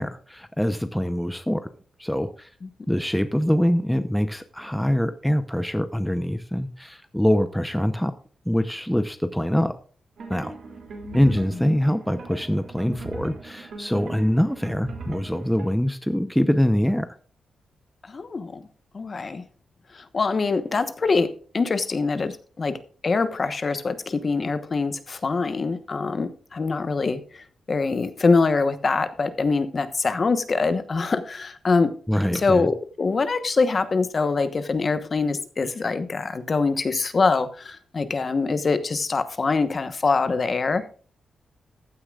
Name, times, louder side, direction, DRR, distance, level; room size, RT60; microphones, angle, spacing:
voice 1, 0.0-1.7 2.0-2.5 2.9-8.1 8.5-9.7 10.3-10.6 11.1-17.1 32.1-32.7, equal, 5° left, 10 dB, 0.8 m, -24 dB
sound 1, 10.2-15.7, right 3 dB, 60° right, 2.7 m, -39 dB
voice 2, 11.0-11.5 18.0-18.6 18.9-19.4 19.9-22.8 23.0-31.9 32.3-40.8, left 4 dB, 40° left, 11 dB, 1.1 m, -24 dB
15.0 x 9.7 x 2.4 m, 0.41 s
cardioid pair, 100°, 0 cm